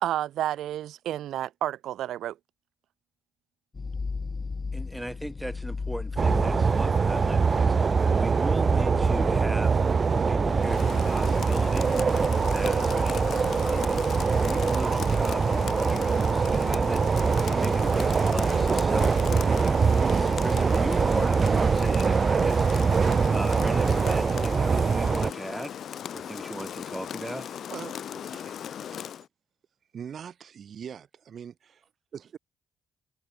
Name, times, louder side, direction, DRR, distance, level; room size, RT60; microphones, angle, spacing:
voice 1, 0.0-2.4, right 12 dB, 80° right, 0.7 m, -30 dB
sound 1, 3.7-19.9, left 4 dB, 30° left, 1.5 m, -38 dB
voice 2, 4.7-9.8 10.1-12.1 12.4-14.0 14.3-17.1 17.4-19.7 20.0-23.0 23.3-25.8 26.1-27.5, right 1 dB, 5° right, 1.5 m, -38 dB
sound 2, 6.2-25.3, right 5 dB, 40° right, 1.0 m, -23 dB
Rain, 10.6-29.3, left 9 dB, 60° left, 2.1 m, -38 dB
voice 3, 27.7-28.6 29.9-32.4, right 8 dB, 55° right, 4.5 m, -42 dB
cardioid pair, 90°, 0 cm